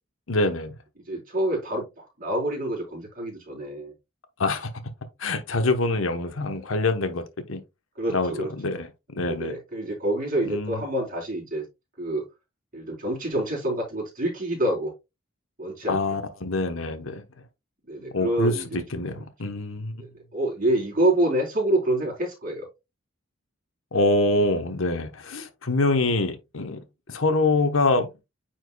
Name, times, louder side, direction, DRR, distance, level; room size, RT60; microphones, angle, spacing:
voice 1, 0.3-0.8 4.4-4.7 5.2-7.6 8.1-9.6 10.5-10.8 15.9-17.2 18.1-20.0 23.9-28.1, left 2 dB, 75° left, 1.1 m, -25 dB
voice 2, 1.1-1.9 2.2-3.9 8.0-8.8 9.2-11.7 12.0-12.2 12.7-14.9 15.6-16.0 17.9-19.1 20.0-22.7, right 1 dB, 40° right, 3.9 m, -27 dB
9.3 x 4.5 x 2.3 m
head